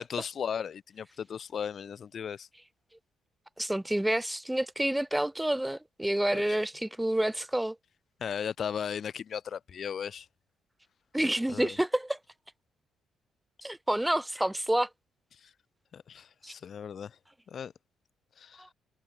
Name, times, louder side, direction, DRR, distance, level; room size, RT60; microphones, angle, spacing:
voice 1, 0.0-2.5 6.3-6.6 8.2-10.3 11.5-11.8 15.4-15.5 15.9-17.2 17.5-17.7 18.4-18.7, left 7 dB, 55° left, 1.4 m, -36 dB
voice 2, 3.6-7.7 11.1-12.2 13.6-14.9 16.4-16.5 18.6-18.7, right 1 dB, 5° right, 1.5 m, -28 dB
cardioid pair, 90°, 0 cm